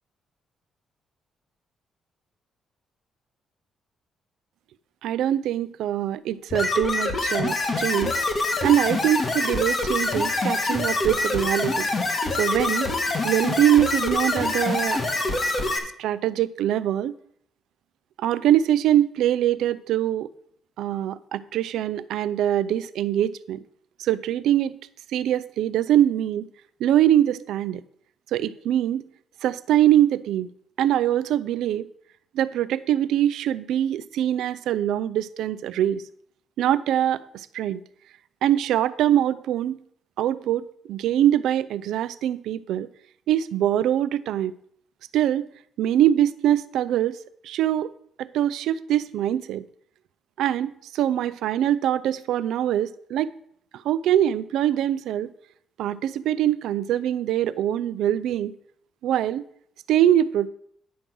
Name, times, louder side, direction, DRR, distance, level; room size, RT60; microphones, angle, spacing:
voice 1, 5.0-8.2 8.6-11.9 12.4-12.9 13.2-15.0 16.0-17.1 18.2-20.3 20.8-23.6 24.0-24.7 25.1-26.5 26.8-27.8 28.3-29.1 29.4-30.5 30.8-31.8 32.3-36.0 36.6-37.8 38.4-39.8 40.2-42.9 43.3-44.5 45.1-45.5 45.8-47.2 47.4-47.9 48.2-49.6 50.4-53.3 53.8-55.3 55.8-58.5 59.0-59.4 59.9-60.5, right 11 dB, 85° right, 0.4 m, -23 dB
sound 1, 6.5-15.8, left 2 dB, 40° left, 1.4 m, -25 dB
10.0 x 3.8 x 6.1 m
cardioid pair, 90°, 0 cm